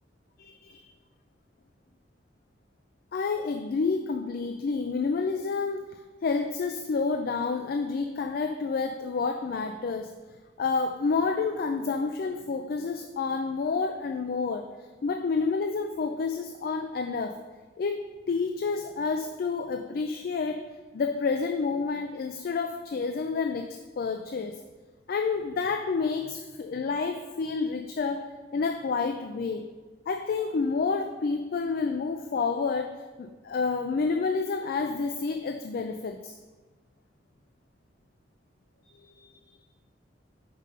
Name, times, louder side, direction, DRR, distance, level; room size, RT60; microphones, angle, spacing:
voice 1, 0.4-0.8 3.1-5.8 6.2-10.1 10.6-14.6 15.0-17.3 17.8-20.6 20.9-23.7 24.0-24.6 25.1-28.2 28.5-29.7 30.1-32.9 33.2-36.4 39.1-39.2, left 4 dB, 55° left, 6 dB, 0.4 m, -29 dB
5.2 x 5.2 x 5.3 m, 1.3 s
head